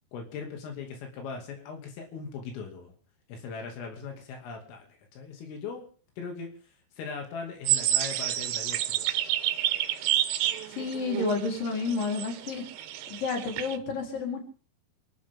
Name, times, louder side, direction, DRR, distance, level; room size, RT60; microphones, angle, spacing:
voice 1, 0.1-2.9 3.3-5.9 6.2-6.5 7.0-9.2, left 5 dB, 85° left, 2 dB, 5.2 m, -39 dB
sound 1, 7.6-13.8, right 13 dB, 75° right, 2.5 m, -29 dB
voice 2, 10.7-12.6 13.1-14.4, left 4 dB, 45° left, 1 dB, 5.5 m, -30 dB
27.5 x 13.0 x 3.8 m, 0.40 s
omnidirectional pair, 5.7 m